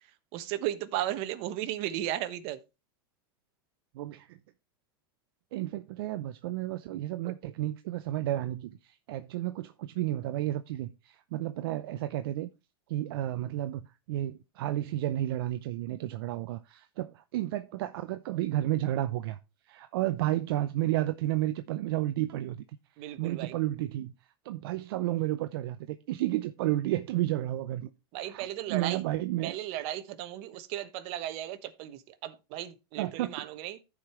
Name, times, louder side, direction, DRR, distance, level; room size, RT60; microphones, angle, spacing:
voice 1, 0.3-2.6 23.0-23.5 28.1-29.0 29.4-33.8, right 13 dB, 50° right, 1.2 m, -35 dB
voice 2, 3.9-4.4 5.5-12.5 12.9-19.4 19.7-22.6 23.0-24.1 24.4-27.9 28.2-29.6 33.0-33.5, right 14 dB, 70° right, 0.6 m, -32 dB
15.0 x 5.0 x 3.0 m
supercardioid pair, 125°, 13 cm